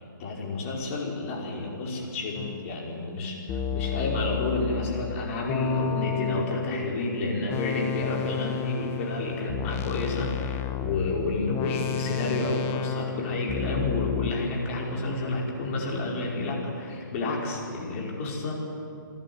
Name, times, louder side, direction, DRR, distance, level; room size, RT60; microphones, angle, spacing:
voice 1, 0.2-18.5, left 2 dB, 40° left, -1 dB, 5.0 m, -30 dB
sound 1, 2.3-2.7 3.5-6.9 7.5-14.3, left 8 dB, 20° left, 1.0 m, -32 dB
29.0 x 11.0 x 9.5 m, 2.7 s
hypercardioid pair, 145°, 11 cm